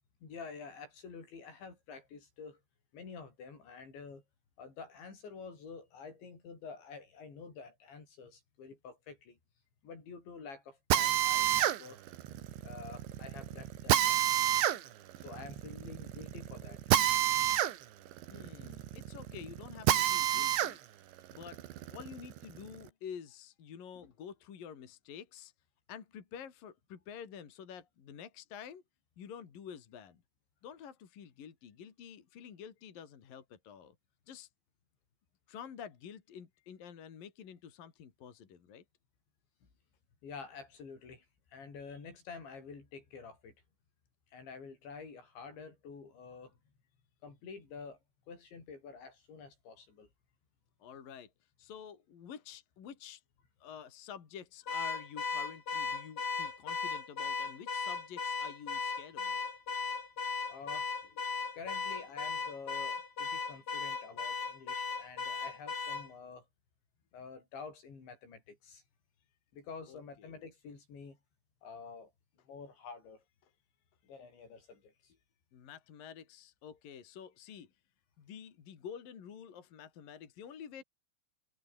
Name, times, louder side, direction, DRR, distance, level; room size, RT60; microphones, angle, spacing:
voice 1, 0.2-2.6 2.9-4.2 4.6-9.4 9.8-12.0 12.6-14.3 15.2-16.8 40.2-43.6 44.3-46.6 47.2-48.0 48.3-50.1 60.5-60.9 61.5-66.5 67.1-68.8 69.5-71.2 71.6-72.1 72.4-73.2 74.0-75.1, left 5 dB, 80° left, 9.2 m, -49 dB
Drill, 10.9-20.7 21.2-22.8, right 12 dB, 80° right, 4.1 m, -30 dB
voice 2, 18.3-20.8 21.3-21.6 21.9-25.5 25.9-28.8 29.2-30.2 30.6-34.0 34.3-34.5 35.5-38.8 50.8-51.3 51.6-53.2 53.6-59.4 69.9-70.4 75.5-77.7 78.2-80.8, left 8 dB, 55° left, 4.4 m, -49 dB
Car / Alarm, 54.7-66.1, left 4 dB, 30° left, 4.4 m, -37 dB
omnidirectional pair, 5.1 m